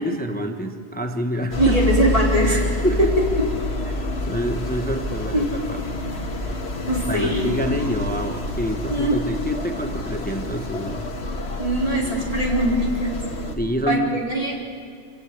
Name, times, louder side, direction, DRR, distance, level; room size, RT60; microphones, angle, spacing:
voice 1, 0.0-1.7 2.4-2.5 2.8-3.1 3.9-5.8 7.1-11.1 13.6-14.2, equal, 10° left, 5 dB, 1.0 m, -27 dB
sound 1, 1.5-13.6, left 2 dB, 65° left, 2.0 m, -28 dB
voice 2, 1.6-2.7 5.3-5.5 6.9-7.5 8.9-9.2 11.6-13.1 13.9-14.6, right 1 dB, 30° right, -2 dB, 4.4 m, -21 dB
27.0 x 16.0 x 8.5 m, 2.3 s
omnidirectional pair, 1.2 m